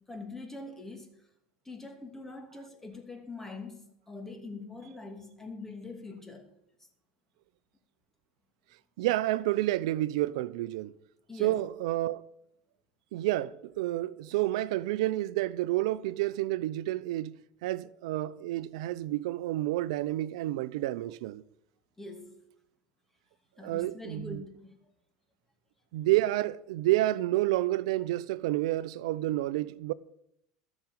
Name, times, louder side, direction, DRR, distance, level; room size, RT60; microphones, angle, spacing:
voice 1, 0.1-1.1 1.6-6.5 6.8-6.9 11.3-11.7 22.0-22.4 23.6-24.8, left 3 dB, 10° left, 2.7 m, -43 dB
voice 2, 9.0-10.9 11.4-12.2 13.1-21.4 23.6-24.4 25.9-29.9, right 16 dB, 80° right, 0.6 m, -29 dB
13.0 x 6.0 x 8.9 m
supercardioid pair, 100°, 3 cm